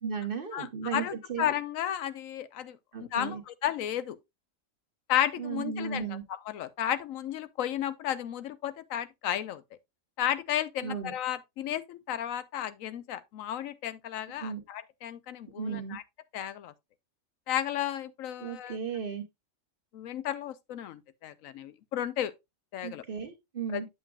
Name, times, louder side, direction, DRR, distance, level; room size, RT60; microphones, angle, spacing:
voice 1, 0.0-1.5 2.9-3.4 5.4-6.2 10.8-11.1 14.4-14.6 15.6-16.0 18.4-19.2 22.8-23.9, right 6 dB, 45° right, 1.3 m, -35 dB
voice 2, 0.5-4.2 5.1-9.6 10.2-16.0 16.3-16.7 17.5-18.8 19.9-22.3 22.7-23.0 23.7-23.8, left 11 dB, 85° left, 1.0 m, -33 dB
8.1 x 7.4 x 2.3 m
omnidirectional pair, 1.4 m